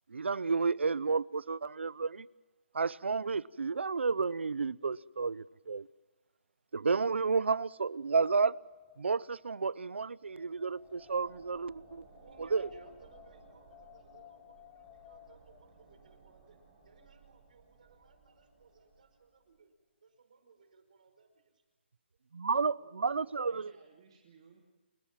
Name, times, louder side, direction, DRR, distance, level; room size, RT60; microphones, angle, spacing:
voice 1, 0.1-2.3 2.7-5.9 6.7-8.6 9.0-12.0 12.5-12.6 22.4-23.7, right 4 dB, 90° right, 0.7 m, -31 dB
Wind, 7.7-15.6, left 15 dB, 10° left, 0.6 m, -59 dB
sound 1, 10.3-19.6, right 4 dB, 10° right, 5.2 m, -60 dB
voice 2, 12.1-16.6 16.8-19.7 20.0-21.4, right 4 dB, 45° right, 4.8 m, -61 dB
voice 3, 22.7-24.6, right 6 dB, 30° right, 2.8 m, -60 dB
29.0 x 17.0 x 7.4 m
hypercardioid pair, 175°, 6 cm